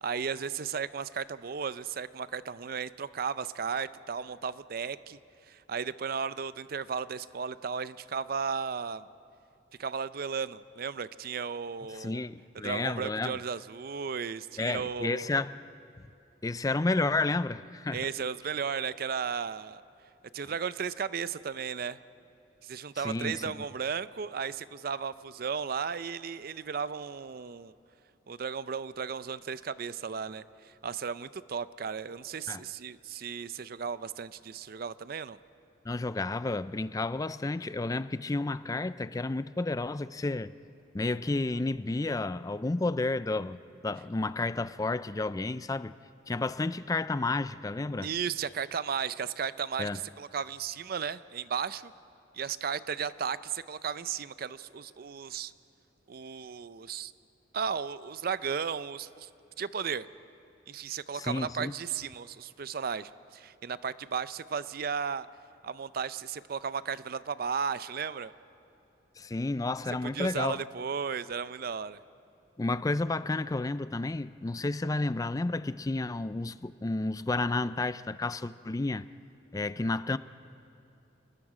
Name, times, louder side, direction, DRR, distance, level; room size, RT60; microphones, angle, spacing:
voice 1, 0.0-5.2 5.5-9.1 9.8-12.2 12.6-15.3 17.9-19.8 20.3-22.0 22.6-27.7 28.3-30.4 30.8-35.4 48.0-51.9 52.3-55.5 56.1-57.1 57.5-59.3 59.6-60.1 60.7-65.3 65.6-68.3 70.1-72.0, right 6 dB, 55° right, 0.5 m, -35 dB
voice 2, 11.9-13.4 14.6-15.5 16.4-18.0 20.4-20.5 23.0-23.6 32.5-32.6 35.8-40.5 40.9-43.6 43.8-45.9 46.3-48.1 49.8-50.0 61.1-61.7 69.2-70.6 72.6-79.0 79.5-80.2, left 2 dB, 20° left, 0.4 m, -31 dB
28.5 x 20.5 x 4.9 m
head